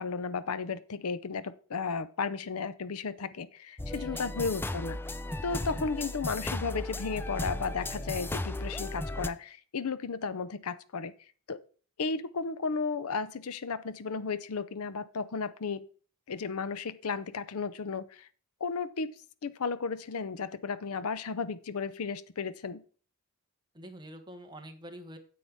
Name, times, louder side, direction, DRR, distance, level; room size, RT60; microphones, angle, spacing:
voice 1, 0.0-5.0 5.4-11.1 11.5-11.6 12.0-15.8 16.3-18.3 18.6-19.1 19.4-22.8, left 5 dB, 75° left, 0.6 m, -34 dB
sound 1, 3.8-9.3, left 1 dB, 10° left, 0.4 m, -35 dB
voice 2, 3.9-4.3 23.7-25.2, right 1 dB, 20° right, 1.2 m, -46 dB
9.2 x 8.5 x 3.6 m
head